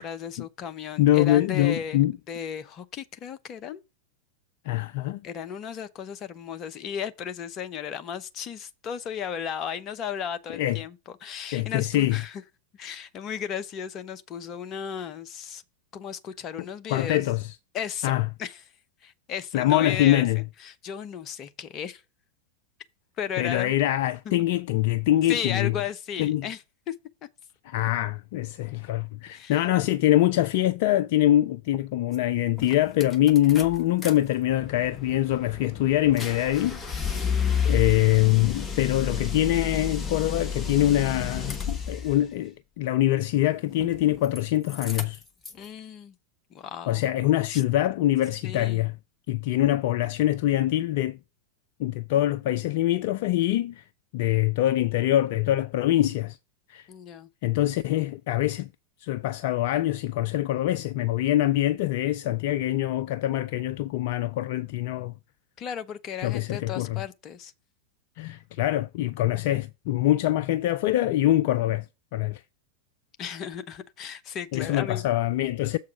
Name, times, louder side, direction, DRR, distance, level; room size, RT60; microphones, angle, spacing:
voice 1, 0.0-3.8 5.2-10.9 11.2-12.4 12.7-15.6 15.9-17.3 17.7-18.1 18.4-18.6 19.0-20.3 20.6-22.0 23.2-23.7 24.3-24.4 25.3-26.9 29.3-29.6 37.2-37.6 45.5-46.1 46.5-47.0 47.5-47.6 48.4-48.9 56.9-57.3 65.6-67.5 73.2-75.0, left 8 dB, 30° left, 0.7 m, -35 dB
voice 2, 1.0-2.1 4.7-5.2 10.5-10.8 11.5-12.2 16.9-17.5 18.0-18.3 19.5-20.4 23.4-25.7 26.2-26.5 27.7-45.2 46.9-49.0 49.3-51.2 51.8-53.8 54.1-56.4 56.7-56.9 57.4-58.7 59.0-65.1 66.2-67.0 68.2-71.9 72.1-72.4 74.5-75.8, left 14 dB, 50° left, 0.4 m, -24 dB
sound 1, 32.1-32.2 32.6-34.1 34.5-42.2 43.7-44.4 44.7-45.7, left 6 dB, 15° left, 1.1 m, -31 dB
7.1 x 4.7 x 5.7 m
figure-of-eight pair, 90°, 0 cm